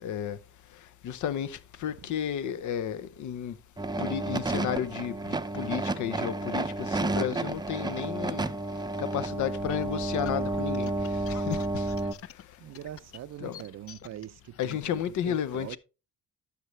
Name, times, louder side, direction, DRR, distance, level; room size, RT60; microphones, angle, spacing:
voice 1, 0.0-0.4 1.0-3.5 4.0-8.5 9.0-11.9 13.4-13.6 14.6-15.8, left 9 dB, 75° left, 0.8 m, -33 dB
sound 1, 3.8-12.1, right 2 dB, 15° right, 0.6 m, -31 dB
sound 2, 9.5-14.8, left 10 dB, 50° left, 0.5 m, -47 dB
voice 2, 12.6-15.8, right 12 dB, 60° right, 0.5 m, -43 dB
11.5 x 6.9 x 3.2 m
cardioid pair, 90°, 30 cm